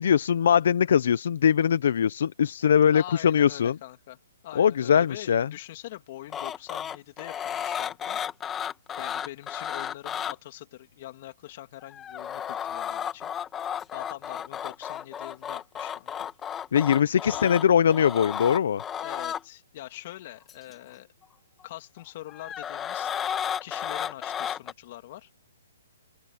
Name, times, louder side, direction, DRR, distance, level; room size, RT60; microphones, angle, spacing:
voice 1, 0.0-3.7 4.6-5.5 16.7-18.8, left 8 dB, 65° left, 0.8 m, -21 dB
voice 2, 2.9-4.2 4.4-8.2 9.0-13.3 13.9-16.3 17.2-17.6 19.0-21.1 21.6-23.1 23.6-25.3, left 15 dB, 45° left, 2.7 m, -43 dB
sound 1, 6.3-10.3 11.8-19.4 20.5-20.7 22.3-24.7, left 9 dB, 15° left, 2.1 m, -33 dB
open air
hypercardioid pair, 150°, 0 cm